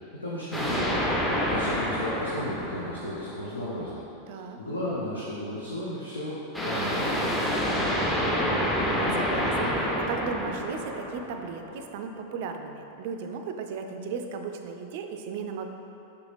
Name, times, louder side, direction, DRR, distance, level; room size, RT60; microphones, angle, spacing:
voice 1, 0.1-1.1 1.4-4.0 4.6-8.3, left 1 dB, 80° left, -7 dB, 0.6 m, -34 dB
sound 1, 0.5-3.6 6.5-11.7, equal, 10° left, 0.6 m, -28 dB
voice 2, 4.3-4.6 8.8-15.7, right 5 dB, 50° right, 5 dB, 0.3 m, -36 dB
4.8 x 3.2 x 3.3 m, 2.9 s
figure-of-eight pair, 90°, 0 cm